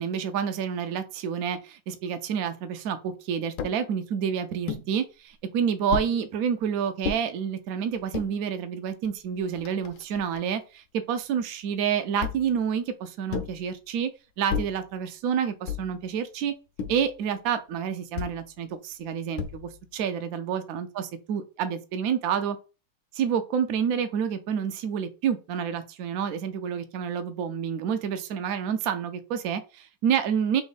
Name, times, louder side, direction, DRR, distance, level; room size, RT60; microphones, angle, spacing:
voice 1, 0.0-14.1 14.4-16.5 16.9-22.6 23.1-30.6, right 7 dB, 70° right, 0.9 m, -28 dB
sound 1, 3.6-3.8 4.7-4.9 5.9-6.2 7.0-7.2 7.9-8.3 9.0-9.1 9.4-10.4 12.2-12.6 13.3-13.6 14.5-14.8 15.7-16.0 16.8-17.1 18.1-18.4 19.4-19.8, left 7 dB, 75° left, 1.2 m, -33 dB
3.5 x 3.1 x 3.9 m
omnidirectional pair, 2.1 m